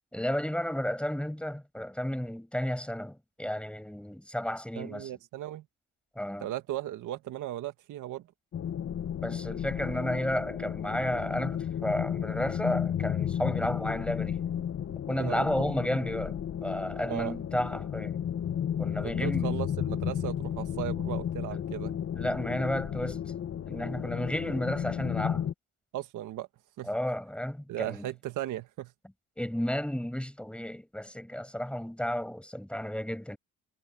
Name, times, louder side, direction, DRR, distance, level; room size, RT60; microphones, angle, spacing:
voice 1, 0.1-5.1 6.2-6.5 9.2-14.4 15.1-18.2 18.8-19.6 21.5-21.6 22.1-23.2 23.7-25.4 26.9-28.1 29.4-33.4, equal, 5° left, 7.8 m, -32 dB
voice 2, 4.8-5.7 6.4-8.3 15.2-15.7 17.1-17.4 19.0-22.0 25.9-26.5 26.8-26.9 27.7-28.9, right 13 dB, 85° right, 1.8 m, -36 dB
sound 1, 8.5-25.5, left 9 dB, 55° left, 1.2 m, -33 dB
cardioid pair, 90°, 30 cm